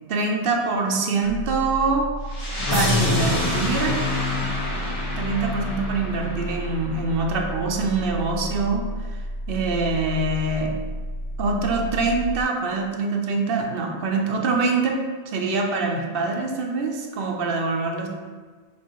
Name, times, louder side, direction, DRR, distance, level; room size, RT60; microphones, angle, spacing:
voice 1, 0.1-2.1 2.7-4.0 5.2-9.2 9.5-10.7 11.4-15.0 15.3-18.1, right 3 dB, 65° right, 1 dB, 0.8 m, -24 dB
sound 1, 1.2-12.4, right 1 dB, 85° left, 0.9 m, -32 dB
sound 2, 2.3-7.2, left 2 dB, 30° left, 1.1 m, -26 dB
6.3 x 2.7 x 3.0 m, 1.5 s
omnidirectional pair, 1.1 m